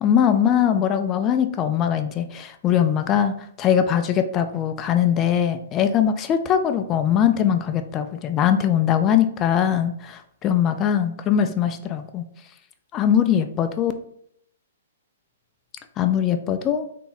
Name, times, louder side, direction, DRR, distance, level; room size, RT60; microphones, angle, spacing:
voice 1, 0.0-12.2 12.9-13.9 16.0-16.9, left 9 dB, 25° left, 8 dB, 0.3 m, -21 dB
3.7 x 2.0 x 4.0 m, 0.69 s
figure-of-eight pair, 115°, 0 cm